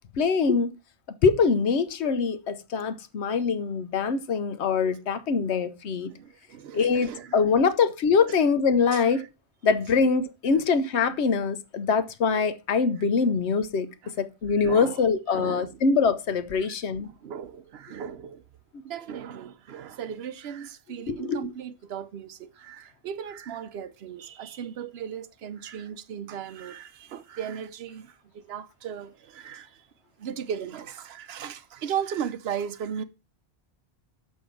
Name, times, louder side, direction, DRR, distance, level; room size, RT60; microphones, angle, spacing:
voice 1, 0.2-0.7 1.2-6.1 6.7-9.2 9.6-13.9 14.2-17.1 21.1-21.5, left 5 dB, 90° left, 1.1 m, -24 dB
voice 2, 6.1-7.7 8.3-8.4 8.9-9.3 14.0-14.1 14.6-15.0 15.3-15.8 16.6-16.7 17.0-18.4 18.8-29.9 30.2-33.0, right 8 dB, 75° right, 0.9 m, -37 dB
6.5 x 5.5 x 5.8 m
omnidirectional pair, 1.1 m